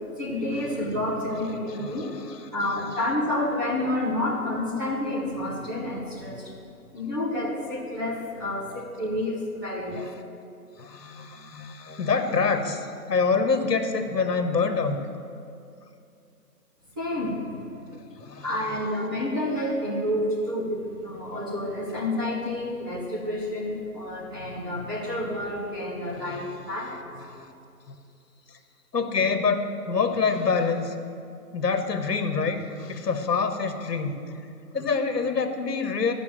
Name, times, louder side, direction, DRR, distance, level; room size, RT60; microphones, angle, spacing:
voice 1, 0.2-2.1 2.5-6.5 6.9-10.1 16.9-17.7 18.4-27.0, left 1 dB, 15° right, -8 dB, 1.2 m, -29 dB
voice 2, 1.8-2.8 9.9-10.1 10.8-15.0 17.9-18.6 26.2-26.7 27.2-27.5 27.9-28.0 28.5-28.6 28.9-31.0 31.5-34.4 34.7-36.1, left 4 dB, 80° left, 7 dB, 1.4 m, -26 dB
12.0 x 6.0 x 7.6 m, 2.5 s
hypercardioid pair, 170°, 48 cm